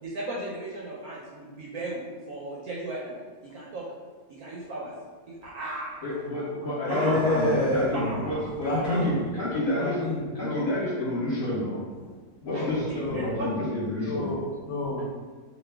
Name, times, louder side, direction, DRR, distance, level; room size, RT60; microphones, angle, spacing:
voice 1, 0.0-3.2 3.4-3.9 4.3-4.9 5.3-7.5 7.9-8.5 8.8-9.1 9.7-9.9 12.5-12.6 12.9-13.5, right 2 dB, 70° right, -4 dB, 0.9 m, -37 dB
voice 2, 6.0-10.0 10.3-11.8 12.4-14.4, left 1 dB, 40° left, -9 dB, 1.1 m, -30 dB
voice 3, 6.9-8.2 8.6-9.2 9.8-10.7 11.1-11.2 11.7-11.8 12.4-13.3 14.0-15.1, left 1 dB, 65° left, -5 dB, 1.0 m, -28 dB
2.9 x 2.1 x 3.3 m, 1.4 s
omnidirectional pair, 1.9 m